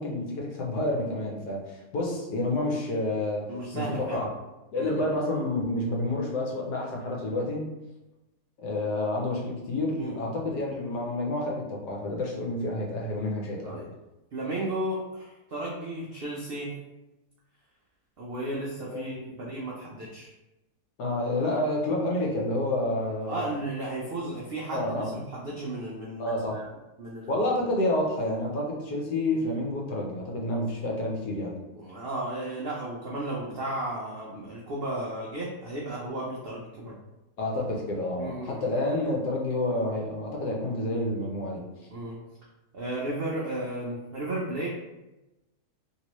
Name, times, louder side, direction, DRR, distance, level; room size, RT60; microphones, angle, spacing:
voice 1, 0.0-3.5 3.7-4.3 4.7-7.6 8.6-13.8 18.9-19.3 21.0-23.5 24.7-25.2 26.2-26.6 27.3-31.6 37.4-41.6, left 1 dB, 80° left, -1 dB, 1.3 m, -29 dB
voice 2, 3.5-4.2 4.7-5.0 10.0-10.3 13.6-13.9 14.3-16.7 18.2-20.3 23.2-26.7 27.0-27.4 31.7-37.0 38.2-38.7 41.9-42.2 42.7-44.7, right 1 dB, 85° right, -4 dB, 0.5 m, -34 dB
2.9 x 2.9 x 3.0 m, 0.99 s
omnidirectional pair, 1.7 m